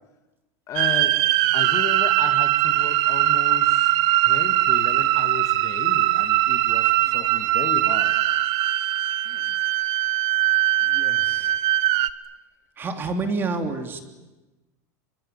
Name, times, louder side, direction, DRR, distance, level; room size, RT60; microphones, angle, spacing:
voice 1, 0.7-1.2 1.5-4.0 4.2-8.2, left 8 dB, 35° left, 8 dB, 2.4 m, -34 dB
sound 1, 0.8-12.1, right 16 dB, 50° right, 1.1 m, -21 dB
voice 2, 6.9-7.4 9.2-9.5 10.8-11.6 12.8-14.0, right 3 dB, 25° right, 6 dB, 3.4 m, -30 dB
26.0 x 24.0 x 9.8 m, 1.1 s
supercardioid pair, 140°, 9 cm